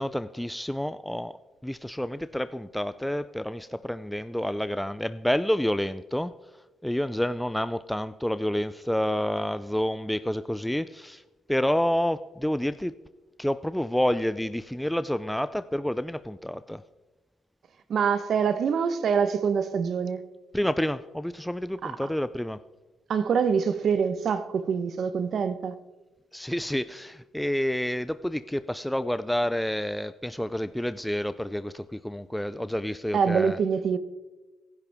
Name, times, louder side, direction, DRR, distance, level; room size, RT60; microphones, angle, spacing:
voice 1, 0.0-1.4 1.6-6.3 6.8-11.2 11.5-12.9 13.4-16.8 20.5-22.6 26.3-33.6, equal, 5° left, 0.4 m, -29 dB
voice 2, 17.9-20.2 21.8-21.9 23.1-25.7 33.1-34.0, right 6 dB, 60° right, 1.1 m, -25 dB
26.0 x 11.0 x 3.6 m
cardioid pair, 90°, 0 cm